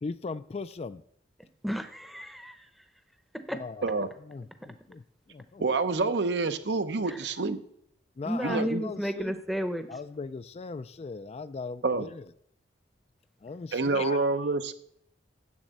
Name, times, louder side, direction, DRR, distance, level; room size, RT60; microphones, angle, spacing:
voice 1, 0.0-1.0 3.5-3.9 4.2-5.0 5.3-5.6 8.2-9.4 9.9-12.3 13.4-14.2, left 4 dB, 35° left, 13 dB, 0.3 m, -38 dB
voice 2, 1.6-2.7 3.5-3.6 7.1-7.2 8.2-9.9, equal, ahead, 9 dB, 0.7 m, -32 dB
voice 3, 5.6-7.6 8.4-8.8 11.8-12.1 13.7-14.7, right 3 dB, 65° right, 10 dB, 0.7 m, -27 dB
7.4 x 7.3 x 8.0 m, 0.70 s
head